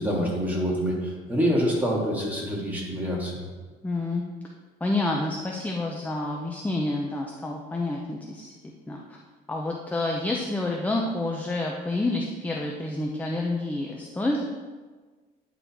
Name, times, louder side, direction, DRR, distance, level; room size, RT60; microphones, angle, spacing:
voice 1, 0.0-3.5, equal, 10° right, -5 dB, 2.4 m, -26 dB
voice 2, 3.8-4.2 4.8-8.5 8.9-9.2 9.5-14.4, left 2 dB, 10° left, 0 dB, 0.7 m, -28 dB
9.9 x 4.0 x 4.5 m, 1.4 s
cardioid pair, 110°, 17 cm